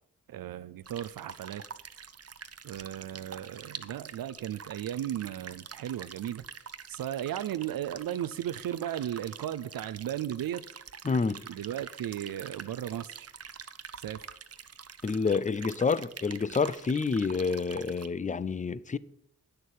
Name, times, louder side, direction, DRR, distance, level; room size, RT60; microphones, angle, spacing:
voice 1, 0.3-1.6 2.6-6.4 6.9-10.6 11.5-13.3 14.0-14.2, right 11 dB, 90° right, 0.5 m, -35 dB
sound 1, 0.9-18.1, right 6 dB, 45° right, 0.7 m, -46 dB
voice 2, 11.0-11.4 15.0-19.0, left 4 dB, 25° left, 0.5 m, -28 dB
9.2 x 6.6 x 8.3 m
cardioid pair, 65°, 33 cm